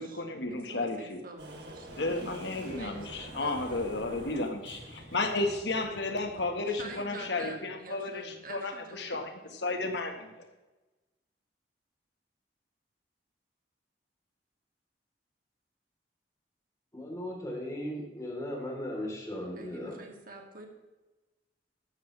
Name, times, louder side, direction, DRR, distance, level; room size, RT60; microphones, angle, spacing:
voice 1, 0.0-1.2 2.0-10.5, left 2 dB, 75° left, 1.8 m, -33 dB
voice 2, 0.7-2.0 2.7-3.7 6.7-9.6 19.5-20.7, right 3 dB, 55° right, 2.5 m, -47 dB
sound 1, 1.4-6.9, right 1 dB, 75° right, 2.9 m, -47 dB
voice 3, 16.9-20.0, left 1 dB, 20° left, 3.9 m, -37 dB
14.0 x 12.0 x 3.4 m
head